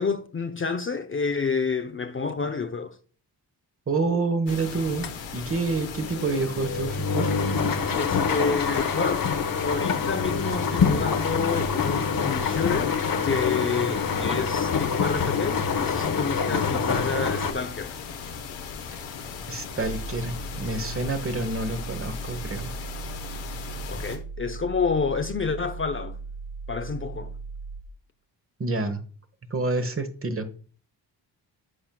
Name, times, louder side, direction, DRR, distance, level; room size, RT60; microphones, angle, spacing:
voice 1, 0.0-3.0 8.0-9.3 9.6-13.0 13.2-18.0 23.9-26.2 26.7-27.3, left 5 dB, 30° left, 0.6 m, -29 dB
voice 2, 3.9-7.3 18.9-19.0 19.5-22.7 28.6-29.0 29.5-30.5, right 3 dB, 30° right, 1.1 m, -28 dB
sound 1, 4.5-24.2, left 6 dB, 80° left, 1.1 m, -38 dB
sound 2, 4.6-5.2 5.5-17.5, left 5 dB, 50° left, 1.0 m, -26 dB
sound 3, 19.8-27.8, right 4 dB, 80° right, 2.6 m, -38 dB
11.0 x 4.3 x 2.3 m
supercardioid pair, 55°, 43 cm